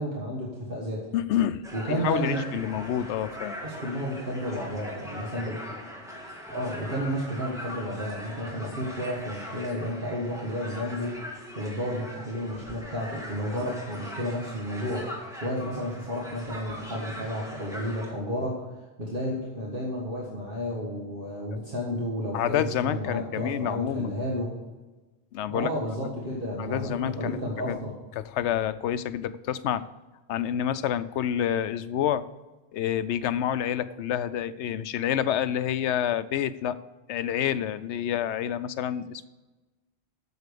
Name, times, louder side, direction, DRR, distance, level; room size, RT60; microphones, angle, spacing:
voice 1, 0.0-1.1 1.7-2.4 3.6-5.6 6.5-11.1 11.4-18.7 19.0-24.5 25.5-27.9, equal, 55° right, -3 dB, 1.9 m, -32 dB
voice 2, 1.1-1.6 1.9-3.6 22.3-24.1 25.3-25.7 26.6-27.8 28.2-29.9 30.3-32.2 32.7-36.8 37.1-39.3, left 10 dB, 85° left, 14 dB, 0.9 m, -28 dB
sound 1, 1.6-18.1, equal, 5° right, 1.8 m, -41 dB
8.3 x 7.2 x 6.8 m, 1.2 s
omnidirectional pair, 1.1 m